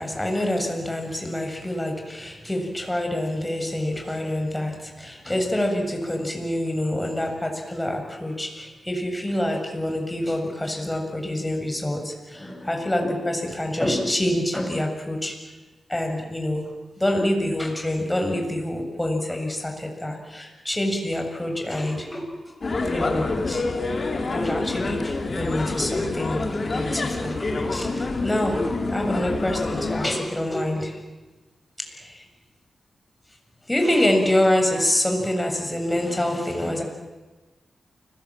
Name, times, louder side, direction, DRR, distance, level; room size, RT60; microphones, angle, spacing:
voice 1, 0.0-15.3 15.9-16.6 17.0-22.6 22.9-23.7 24.3-26.4 26.7-28.6 28.9-31.0 33.7-36.8, left 1 dB, 15° left, 3 dB, 7.3 m, -26 dB
sound 1, 22.6-30.1, left 3 dB, 50° left, 4.3 m, -27 dB
29.5 x 21.5 x 9.1 m, 1.2 s
cardioid pair, 70°, 0 cm